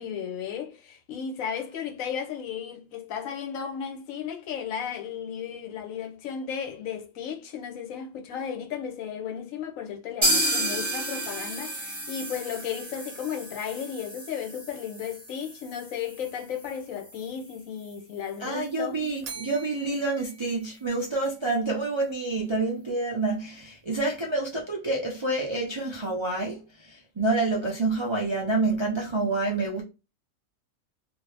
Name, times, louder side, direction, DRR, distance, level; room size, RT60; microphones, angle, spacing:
voice 1, 0.0-19.0, left 8 dB, 75° left, 1.0 m, -34 dB
sound 1, 10.2-17.9 18.2-18.3 18.7-18.8 19.2-19.3, right 1 dB, 20° right, 1.3 m, -32 dB
voice 2, 18.4-29.8, right 2 dB, 35° right, 0.4 m, -28 dB
Bell, 19.2-21.4, right 5 dB, 85° right, 1.0 m, -44 dB
2.7 x 2.5 x 3.2 m
omnidirectional pair, 1.4 m